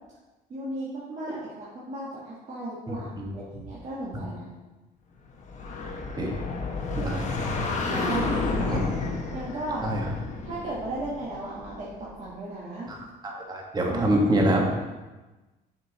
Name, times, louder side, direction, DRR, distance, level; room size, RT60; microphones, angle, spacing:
voice 1, 0.5-4.5 7.8-8.8 9.3-9.8 10.4-12.9 13.9-14.1 14.4-14.6, right 2 dB, 45° right, -8 dB, 1.8 m, -35 dB
voice 2, 2.9-3.3 6.2-6.4 6.9-7.4 8.7-8.8 9.8-10.1 12.9-13.0 13.2-14.6, right 1 dB, 25° right, -1 dB, 1.6 m, -26 dB
sound 1, 5.4-12.0, left 3 dB, 45° left, 1.2 m, -31 dB
7.4 x 5.3 x 4.1 m, 1.2 s
cardioid pair, 110°, 17 cm